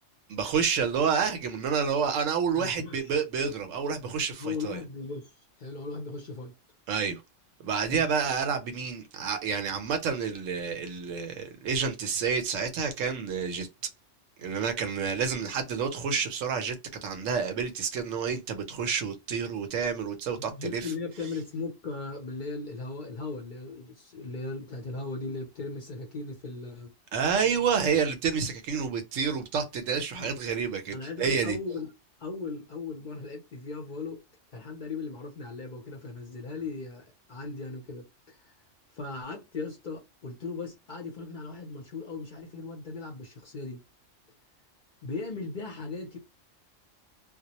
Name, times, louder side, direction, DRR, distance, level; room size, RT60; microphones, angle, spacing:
voice 1, 0.3-4.8 6.9-7.2 7.6-13.7 14.4-20.9 27.1-31.6, right 6 dB, 85° right, 1.0 m, -29 dB
voice 2, 2.5-3.1 4.3-5.3 5.6-6.5 7.9-8.0 20.4-26.9 30.2-30.3 30.9-31.9 32.2-34.2 34.5-38.5 38.9-43.8 45.0-46.2, left 3 dB, 50° left, 0.6 m, -38 dB
2.2 x 2.0 x 2.7 m
omnidirectional pair, 1.3 m